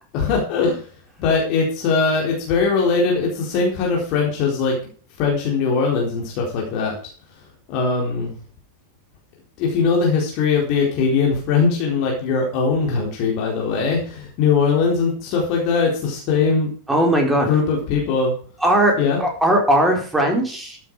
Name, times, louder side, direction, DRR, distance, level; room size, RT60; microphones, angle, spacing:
voice 1, 0.1-0.8 1.2-4.7 5.2-7.0 7.7-8.3 9.6-16.7 17.5-18.3 19.0-19.2, left 5 dB, 40° left, -1 dB, 4.2 m, -20 dB
voice 2, 16.9-17.6 18.6-20.8, right 1 dB, 5° right, 1 dB, 4.5 m, -18 dB
13.5 x 9.3 x 4.9 m, 0.43 s
figure-of-eight pair, 90°, 0 cm